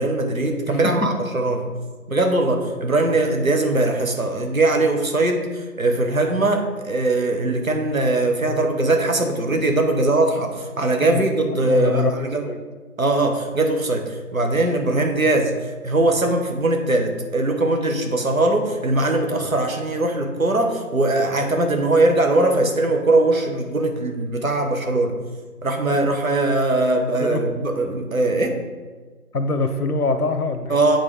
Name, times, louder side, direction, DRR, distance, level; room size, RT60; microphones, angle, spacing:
voice 1, 0.0-1.7 2.1-12.5 13.0-25.2 25.6-28.6 30.7-31.0, right 2 dB, 65° right, 4 dB, 1.0 m, -21 dB
voice 2, 0.7-1.1 11.0-11.2 11.6-12.1 12.4-12.6 27.2-27.4 29.3-30.8, left 3 dB, 85° left, 8 dB, 0.8 m, -23 dB
8.8 x 3.8 x 3.6 m, 1.4 s
figure-of-eight pair, 175°, 44 cm